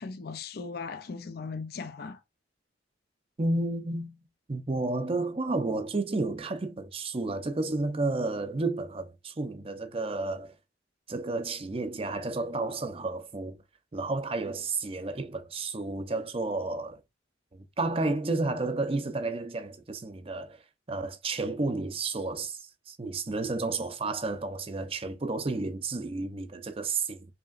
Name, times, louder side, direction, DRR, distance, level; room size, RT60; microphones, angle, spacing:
voice 1, 0.0-2.2, left 4 dB, 55° left, 0.4 m, -38 dB
voice 2, 3.4-4.2 4.5-10.5 11.1-13.6 13.9-17.0 17.5-20.6 20.9-27.3, right 3 dB, 30° right, 0.6 m, -31 dB
5.2 x 3.0 x 2.4 m
head